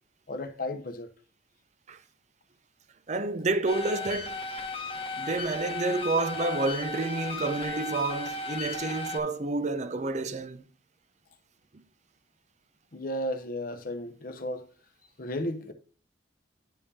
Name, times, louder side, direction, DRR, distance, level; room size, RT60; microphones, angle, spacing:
voice 1, 0.3-1.1 12.9-14.7 15.2-15.7, left 1 dB, 50° left, 0.8 m, -34 dB
voice 2, 3.1-4.4 5.2-10.6, right 3 dB, 35° right, 0.5 m, -29 dB
sound 1, 3.7-9.2, left 3 dB, 30° left, 1.1 m, -35 dB
10.0 x 5.3 x 2.7 m
head